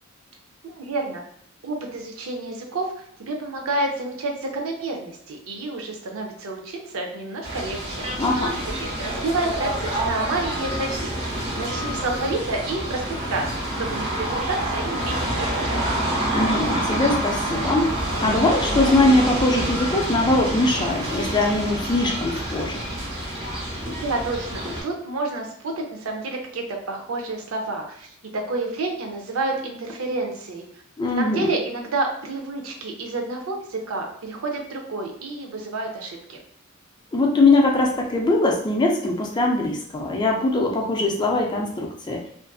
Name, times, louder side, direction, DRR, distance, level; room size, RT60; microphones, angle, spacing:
voice 1, 0.6-1.2 1.6-11.1 11.5-13.5 13.8-15.9 24.0-30.6 31.2-36.4, right 2 dB, 85° right, 2 dB, 0.5 m, -29 dB
sound 1, 7.4-24.8, right 1 dB, 30° right, 0.8 m, -27 dB
voice 2, 8.2-8.6 16.3-17.9 18.2-22.8 31.0-31.5 37.1-42.2, left 2 dB, 20° left, 0 dB, 0.4 m, -21 dB
2.5 x 2.5 x 2.3 m, 0.64 s
head